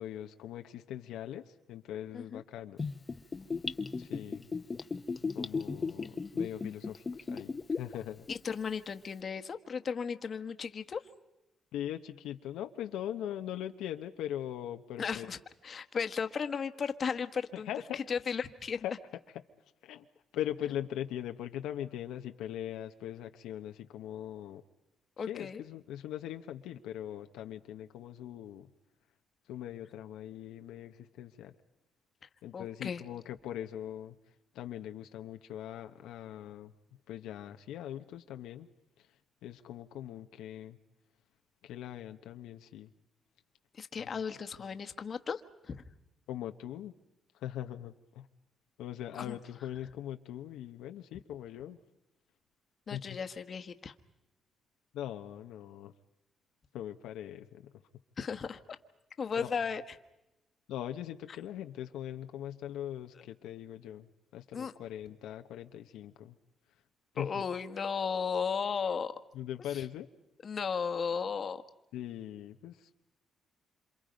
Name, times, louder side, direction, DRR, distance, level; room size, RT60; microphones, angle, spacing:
voice 1, 0.0-2.8 4.0-4.4 5.3-8.3 11.7-15.3 17.5-18.0 18.8-18.9 19.8-20.0 20.3-24.6 25.3-28.7 29.5-31.5 32.4-34.1 34.5-36.7 37.1-38.7 39.4-40.8 41.6-42.9 44.0-44.1 46.3-46.9 47.4-48.3 48.8-51.8 52.9-53.2 54.9-55.9 56.7-57.7 59.4-59.6 60.7-66.3 67.1-67.3 69.3-70.1 71.9-72.9, left 11 dB, 90° left, 7 dB, 1.0 m, -41 dB
Gurgling / Bathtub (filling or washing), 2.8-7.9 8.3-8.4, left 4 dB, 30° left, 1.0 m, -35 dB
voice 2, 8.3-11.0 15.0-15.4 15.6-17.7 17.9-18.8 25.2-25.6 32.5-33.0 43.7-45.8 49.1-49.4 52.9-53.9 58.2-58.8 59.2-59.8 64.5-64.7 67.1-69.1 69.7-69.8 70.4-71.6, left 6 dB, 45° left, 9 dB, 1.4 m, -35 dB
27.5 x 27.0 x 5.3 m, 0.93 s
cardioid pair, 90°, 0 cm